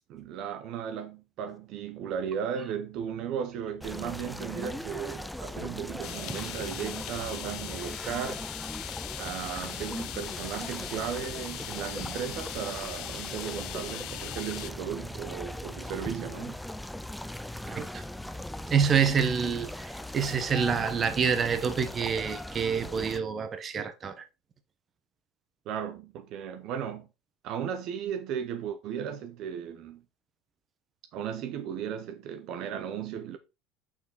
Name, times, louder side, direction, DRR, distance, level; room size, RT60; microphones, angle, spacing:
voice 1, 0.1-8.5 9.2-16.6 25.7-27.1 27.4-30.0 31.1-33.4, right 8 dB, 60° right, 0.8 m, -36 dB
sound 1, 3.8-23.2, left 1 dB, 5° left, 0.4 m, -39 dB
sound 2, 6.0-14.7, left 15 dB, 65° left, 0.5 m, -40 dB
voice 2, 17.7-18.0 18.7-24.2, right 6 dB, 35° right, 1.0 m, -27 dB
5.9 x 4.6 x 4.0 m
supercardioid pair, 105°, 0 cm